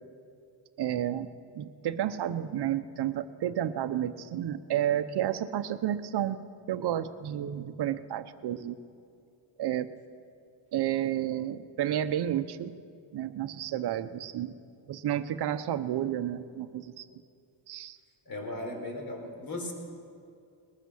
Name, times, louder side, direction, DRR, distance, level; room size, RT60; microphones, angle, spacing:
voice 1, 0.8-1.3 1.5-6.4 6.7-8.8 9.6-9.9 10.7-12.7 13.1-14.5 14.9-17.0 17.7-18.0, right 11 dB, 55° right, 11 dB, 0.9 m, -31 dB
voice 2, 18.3-19.7, left 1 dB, 45° left, 3 dB, 4.5 m, -37 dB
22.0 x 20.5 x 6.4 m, 2.4 s
cardioid pair, 160°, 48 cm